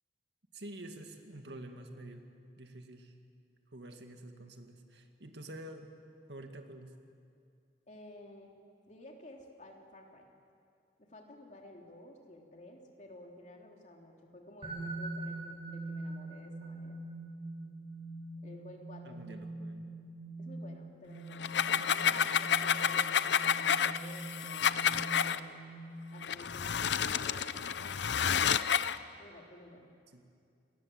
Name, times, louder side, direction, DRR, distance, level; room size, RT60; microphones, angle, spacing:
voice 1, 0.5-2.2 2.6-3.1 3.7-5.9 6.3-7.0 19.0-19.9 30.1-30.3, right 1 dB, 75° right, 5 dB, 2.1 m, -48 dB
voice 2, 7.9-8.5 8.9-10.3 11.0-17.0 18.4-19.4 20.4-24.9 25.2-25.8 26.1-28.9 29.2-29.9, left 1 dB, 45° left, 1 dB, 3.3 m, -53 dB
sound 1, 14.6-26.3, right 2 dB, 30° right, 7.0 m, -43 dB
sound 2, 21.3-25.4 26.2-29.0, left 8 dB, 80° left, 0.6 m, -30 dB
28.0 x 20.0 x 8.0 m, 2.4 s
head